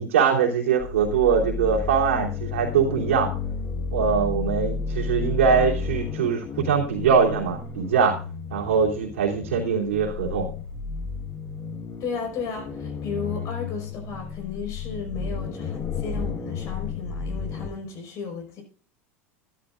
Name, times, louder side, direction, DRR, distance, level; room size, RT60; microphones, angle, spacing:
voice 1, 0.0-3.3 3.9-8.1 8.5-10.5, right 6 dB, 85° right, 3.0 m, -22 dB
sound 1, 0.8-17.7, left 5 dB, 35° left, 1.5 m, -32 dB
voice 2, 12.0-18.6, left 5 dB, 50° left, 5.1 m, -34 dB
13.0 x 12.0 x 2.5 m
hypercardioid pair, 95°, 7 cm